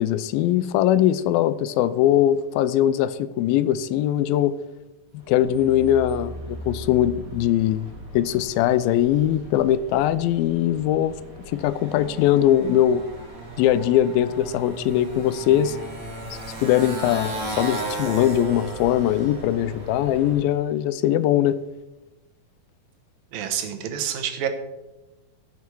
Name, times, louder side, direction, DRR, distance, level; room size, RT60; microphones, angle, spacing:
voice 1, 0.0-4.5 5.1-7.9 8.1-11.1 11.5-13.0 13.6-15.8 16.3-21.6, left 11 dB, 85° left, 14 dB, 2.4 m, -21 dB
Motorcycle, 5.2-20.6, right 1 dB, 30° right, 1.8 m, -36 dB
voice 2, 23.3-24.5, right 9 dB, 75° right, 6 dB, 2.7 m, -28 dB
15.5 x 7.0 x 4.7 m, 1.0 s
omnidirectional pair, 4.1 m